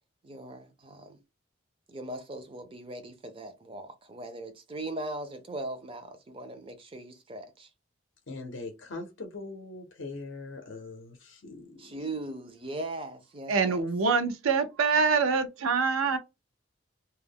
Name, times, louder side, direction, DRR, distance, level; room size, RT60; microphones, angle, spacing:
voice 1, 0.2-1.2 1.9-7.7 11.8-13.9, right 2 dB, 25° right, 0.5 m, -39 dB
voice 2, 8.3-11.8, left 3 dB, 65° left, 0.6 m, -41 dB
voice 3, 13.5-16.2, right 5 dB, 85° right, 0.5 m, -25 dB
2.3 x 2.0 x 3.4 m
head